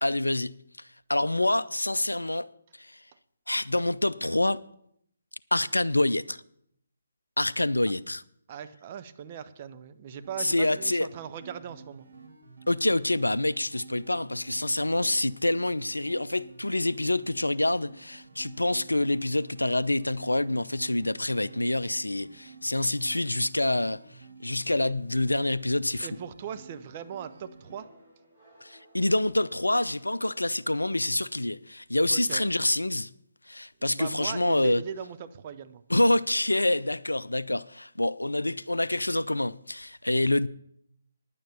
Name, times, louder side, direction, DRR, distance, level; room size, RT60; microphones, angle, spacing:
voice 1, 0.0-2.5 2.8-3.0 3.5-4.6 5.5-6.4 7.4-8.2 10.4-11.1 12.7-24.0 24.4-26.1 28.6-33.1 33.5-34.8 35.9-40.5, left 1 dB, 80° left, 0.4 m, -27 dB
voice 2, 8.5-12.1 24.8-24.9 26.0-27.9 32.1-32.4 33.8-35.8, right 8 dB, 30° right, 0.7 m, -39 dB
sound 1, 10.1-27.8, right 4 dB, 60° right, 2.6 m, -51 dB
sound 2, 27.6-31.2, right 1 dB, 10° right, 5.3 m, -58 dB
10.0 x 9.0 x 6.8 m
figure-of-eight pair, 140°, 0 cm